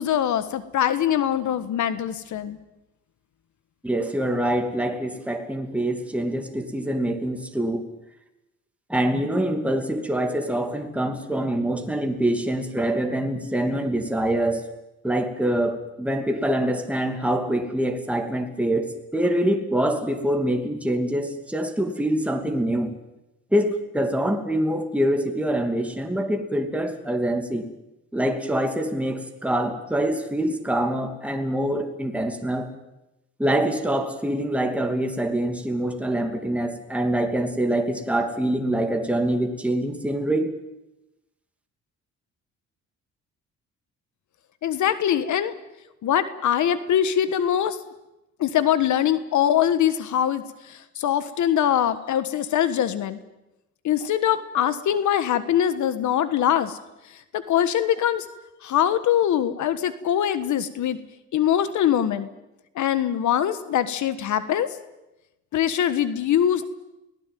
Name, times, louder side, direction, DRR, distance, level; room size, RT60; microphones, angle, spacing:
voice 1, 0.0-2.6 44.6-45.5 46.0-47.8 48.4-53.2 53.8-56.8 57.3-58.3 58.6-61.0 61.3-62.3 62.7-64.8 65.5-66.7, left 10 dB, 75° left, 13 dB, 1.5 m, -23 dB
voice 2, 3.8-7.8 8.9-14.6 15.0-22.9 23.5-27.7 28.1-32.7 33.4-40.5, right 1 dB, 5° right, 4 dB, 2.7 m, -25 dB
24.5 x 17.5 x 9.3 m, 0.96 s
cardioid pair, 90°, 30 cm